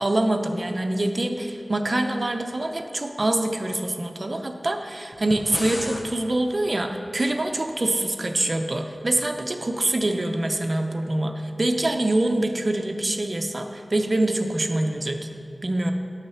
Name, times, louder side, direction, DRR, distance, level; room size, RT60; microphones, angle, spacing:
voice 1, 0.0-15.3 15.6-15.9, right 1 dB, 45° right, 5 dB, 0.7 m, -25 dB
sound 1, 5.1-6.1, left 1 dB, 50° left, 0.9 m, -34 dB
10.0 x 6.6 x 5.7 m, 2.7 s
wide cardioid pair, 75°, 0 cm